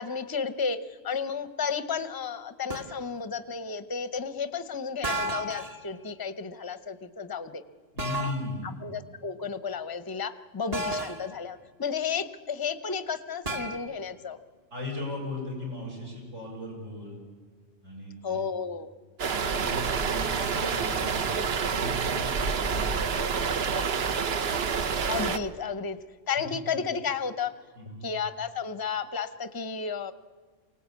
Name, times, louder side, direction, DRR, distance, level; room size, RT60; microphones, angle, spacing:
voice 1, 0.0-7.6 8.6-14.4 18.2-18.9 25.1-26.0 26.3-27.5 28.0-30.1, left 6 dB, 20° left, 12 dB, 0.7 m, -32 dB
sound 1, 2.7-3.0 5.0-5.8 8.0-8.5 10.7-11.3 13.5-13.8, right 1 dB, 30° right, 1.2 m, -32 dB
voice 2, 7.9-8.8 14.7-17.2 17.8-18.5 19.2-23.4 27.8-28.1, left 2 dB, 85° right, -2 dB, 7.2 m, -37 dB
sound 2, 19.2-25.4, right 5 dB, 55° right, 1.1 m, -28 dB
24.0 x 18.0 x 8.4 m, 1.5 s
omnidirectional pair, 1.3 m